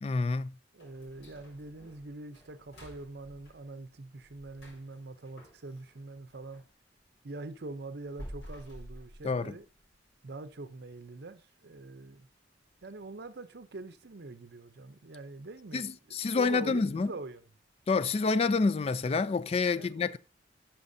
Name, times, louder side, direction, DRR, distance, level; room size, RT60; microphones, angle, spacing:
voice 1, 0.0-0.5 9.2-9.5 15.7-17.1 17.9-20.2, left 4 dB, 35° left, 0.3 m, -28 dB
voice 2, 0.7-6.6 7.2-9.7 10.2-12.3 12.8-17.4 19.8-20.2, right 2 dB, 60° right, 0.7 m, -44 dB
sound 1, 0.8-6.7 7.1-9.9 10.3-10.4 10.9-11.0 11.5-11.8 12.2-12.3 12.8-12.9, equal, 60° left, 4.0 m, -51 dB
11.5 x 5.8 x 2.7 m
head